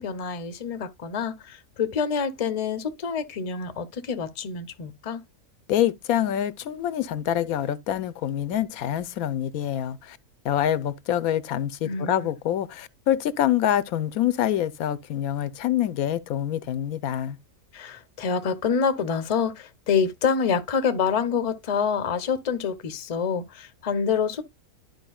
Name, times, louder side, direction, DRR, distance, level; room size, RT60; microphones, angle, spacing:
voice 1, 0.0-5.2 11.8-12.3 17.7-24.4, left 6 dB, 35° left, 0.7 m, -27 dB
voice 2, 5.7-10.2 10.4-17.4, left 11 dB, 90° left, 1.1 m, -26 dB
12.0 x 4.7 x 2.2 m
omnidirectional pair, 1.5 m